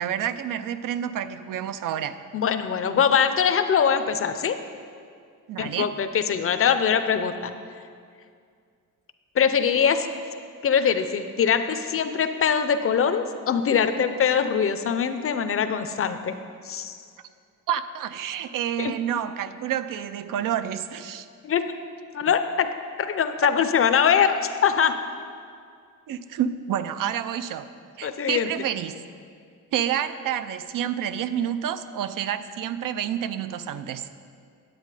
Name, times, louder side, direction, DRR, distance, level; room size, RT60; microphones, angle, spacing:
voice 1, 0.0-2.2 5.5-5.9 17.7-21.3 26.1-27.7 28.0-29.0 29.7-34.1, right 9 dB, 70° right, 12 dB, 0.5 m, -29 dB
voice 2, 2.3-4.6 5.6-7.5 9.4-10.1 10.6-16.4 16.6-17.0 18.8-18.9 21.4-21.6 22.1-22.7 23.1-25.0 28.0-28.5, left 7 dB, 40° left, 10 dB, 0.5 m, -22 dB
9.5 x 8.2 x 4.8 m, 2.2 s
wide cardioid pair, 140°, 34 cm